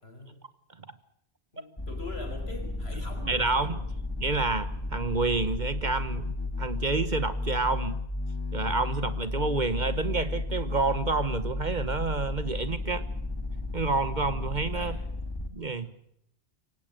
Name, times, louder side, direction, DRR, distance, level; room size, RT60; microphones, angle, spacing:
voice 1, 0.0-0.4 1.5-3.8 14.7-15.0, left 2 dB, 65° left, 4 dB, 5.7 m, -43 dB
sound 1, 1.8-15.5, left 2 dB, 20° left, 2.9 m, -33 dB
voice 2, 3.3-3.7 4.2-6.3 6.6-8.0 8.5-13.0 13.7-15.0 15.5-15.9, right 3 dB, 45° right, 13 dB, 1.2 m, -29 dB
24.0 x 18.0 x 7.6 m, 0.71 s
omnidirectional pair, 1.1 m